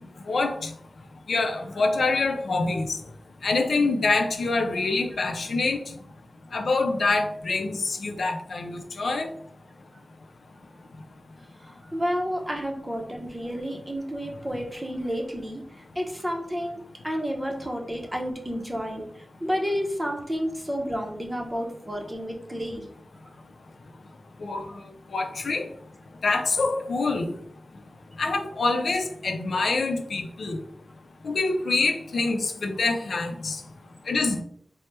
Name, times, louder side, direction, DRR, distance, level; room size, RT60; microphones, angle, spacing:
voice 1, 0.3-0.7 1.3-3.0 3.4-5.8 6.5-9.3 24.4-24.7 25.1-25.7 26.2-27.3 28.2-30.6 31.2-33.6 34.1-34.4, left 3 dB, 85° left, 5 dB, 0.4 m, -25 dB
voice 2, 11.6-22.9, equal, 15° right, 1 dB, 0.6 m, -31 dB
4.3 x 2.0 x 3.2 m, 0.63 s
wide cardioid pair, 110°, 0 cm